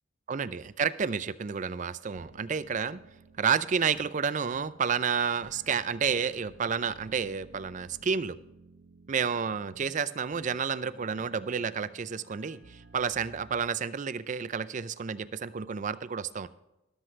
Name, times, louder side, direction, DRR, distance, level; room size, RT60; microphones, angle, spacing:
voice 1, 0.3-3.0 3.4-8.4 9.1-16.5, right 6 dB, 40° right, 15 dB, 0.4 m, -30 dB
sound 1, 2.1-13.7, right 2 dB, 65° right, 0.8 m, -55 dB
13.5 x 12.5 x 3.2 m, 0.93 s
head